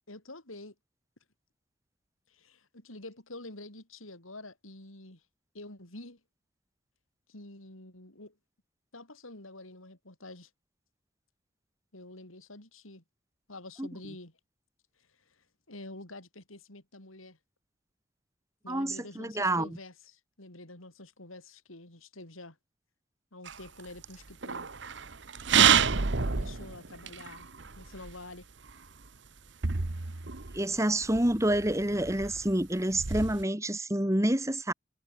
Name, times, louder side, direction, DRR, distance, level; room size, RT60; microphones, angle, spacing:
voice 1, 0.1-0.7 2.3-5.2 5.5-6.2 7.3-8.3 8.9-10.5 11.9-13.0 13.5-14.3 15.4-17.4 18.6-22.6 23.3-24.7 26.3-27.5 27.8-28.5, left 2 dB, 85° left, 5.3 m, -47 dB
voice 2, 18.7-19.7 30.5-34.7, right 1 dB, 15° right, 2.2 m, -28 dB
sound 1, 23.5-28.2 28.7-28.8 29.0-29.1 29.6-33.4, right 7 dB, 60° right, 1.2 m, -29 dB
head